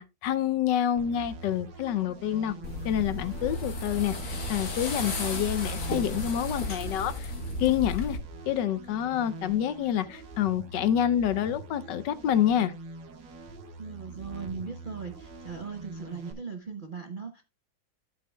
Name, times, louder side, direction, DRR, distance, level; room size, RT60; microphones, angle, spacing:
voice 1, 0.0-2.5 2.8-7.3 7.6-8.2 8.4-12.7, left 10 dB, 70° left, 1.2 m, -27 dB
sound 1, 1.0-16.3, right 3 dB, 70° right, 2.1 m, -44 dB
sound 2, 2.6-8.2, left 1 dB, 50° left, 2.4 m, -34 dB
voice 2, 13.8-17.4, right 5 dB, 50° right, 0.6 m, -38 dB
12.0 x 7.8 x 2.2 m
omnidirectional pair, 2.1 m